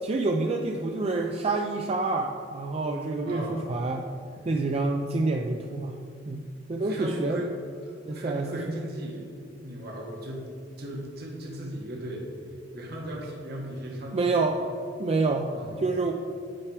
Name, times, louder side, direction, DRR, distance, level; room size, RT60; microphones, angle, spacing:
voice 1, 0.0-4.0 4.4-6.0 6.3-7.4 8.0-8.8 14.1-14.6 15.0-16.1, right 3 dB, 35° right, 2 dB, 0.4 m, -27 dB
voice 2, 3.3-3.6 6.8-7.5 8.1-9.3 9.6-10.5 10.8-12.3 12.7-14.4 15.5-15.7, right 1 dB, 60° right, -1 dB, 1.1 m, -37 dB
8.8 x 4.7 x 4.7 m, 2.3 s
head